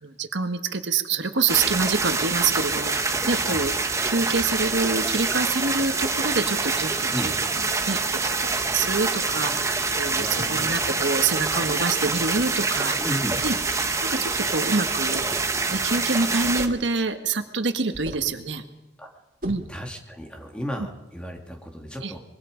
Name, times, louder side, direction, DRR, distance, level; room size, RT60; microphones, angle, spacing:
voice 1, 0.0-3.7 4.0-13.0 13.4-13.6 14.0-18.6 19.4-19.6 22.0-22.1, right 4 dB, 80° right, 8 dB, 1.6 m, -26 dB
sound 1, 1.5-16.7, right 4 dB, 15° right, 1.2 m, -26 dB
voice 2, 10.2-10.8 13.0-13.4 19.0-19.1 19.7-22.2, equal, 5° left, 3 dB, 2.5 m, -34 dB
sound 2, 15.1-15.5 16.6-16.9 17.9-18.4 19.4-19.7, equal, 50° right, 2.5 m, -36 dB
24.5 x 22.0 x 5.2 m, 1.0 s
head